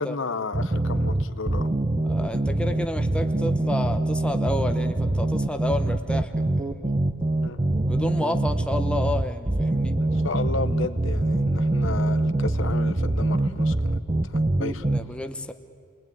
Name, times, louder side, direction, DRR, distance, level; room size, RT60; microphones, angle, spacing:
voice 1, 0.0-1.7 7.4-7.6 10.0-14.8, left 3 dB, 70° left, 11 dB, 0.9 m, -33 dB
sound 1, 0.5-15.0, right 2 dB, 25° right, 0.8 m, -24 dB
voice 2, 2.0-7.1 7.8-10.0 14.8-15.5, left 1 dB, 5° left, 6 dB, 0.9 m, -31 dB
29.0 x 20.0 x 9.2 m, 2.3 s
head